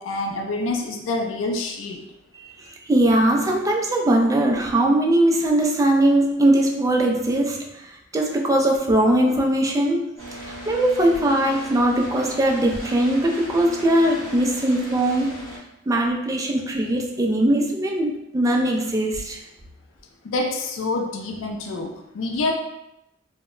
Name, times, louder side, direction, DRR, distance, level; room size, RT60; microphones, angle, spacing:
voice 1, 0.0-2.1 20.2-22.5, left 2 dB, 80° left, 2 dB, 0.4 m, -27 dB
voice 2, 2.6-7.9 8.1-10.1 10.4-15.4 15.9-19.4, right 1 dB, 15° right, 0 dB, 0.3 m, -20 dB
sound 1, 10.2-15.6, right 1 dB, 15° left, 1.0 m, -37 dB
2.1 x 2.1 x 3.6 m, 0.88 s
head